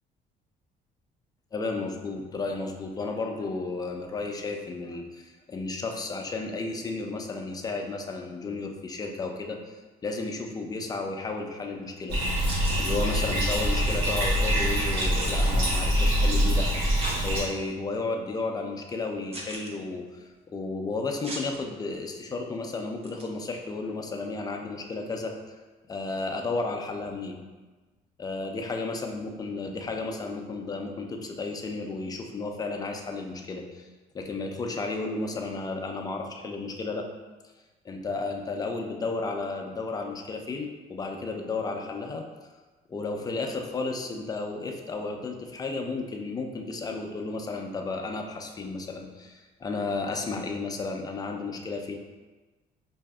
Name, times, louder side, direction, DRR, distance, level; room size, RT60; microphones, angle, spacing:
voice 1, 1.5-9.8 10.0-12.2 12.8-25.6 25.9-27.4 28.2-33.9 34.1-37.1 37.8-42.3 42.9-51.9, left 3 dB, 20° left, 3 dB, 0.4 m, -33 dB
Bathtub (filling or washing), 12.1-17.4, equal, 85° right, 1.2 m, -24 dB
sound 1, 12.4-12.8 15.0-15.3 17.0-17.2 17.8-17.9 19.3-19.7 21.2-21.5 23.0-23.2, right 2 dB, 35° right, 0.6 m, -37 dB
4.7 x 2.6 x 2.3 m, 1.2 s
cardioid pair, 110°, 17 cm